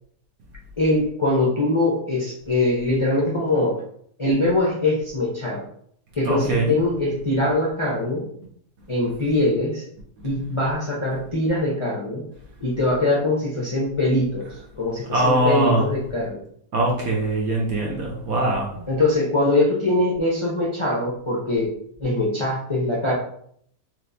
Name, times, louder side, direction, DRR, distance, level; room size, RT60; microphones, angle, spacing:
voice 1, 0.8-3.8 4.2-5.6 6.2-8.2 8.9-9.8 10.2-12.2 12.6-14.5 14.8-16.4 18.9-21.7 22.0-23.1, left 2 dB, 50° left, -5 dB, 0.3 m, -22 dB
voice 2, 6.3-6.7 15.1-15.8 16.7-18.7, right 1 dB, 65° right, -2 dB, 1.2 m, -21 dB
4.4 x 3.1 x 2.6 m, 0.66 s
omnidirectional pair, 1.8 m